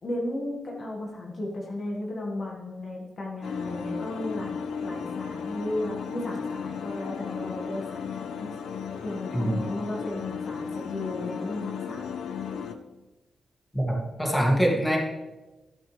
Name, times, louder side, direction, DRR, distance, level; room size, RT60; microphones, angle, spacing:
voice 1, 0.0-4.5 4.8-8.5 9.0-12.0, left 1 dB, 40° left, -1 dB, 1.7 m, -34 dB
sound 1, 3.4-12.7, left 6 dB, 85° left, 0.8 m, -35 dB
voice 2, 13.7-15.0, right 1 dB, 10° left, -2 dB, 2.3 m, -24 dB
12.0 x 11.0 x 3.3 m, 1.1 s
wide cardioid pair, 140°, 0 cm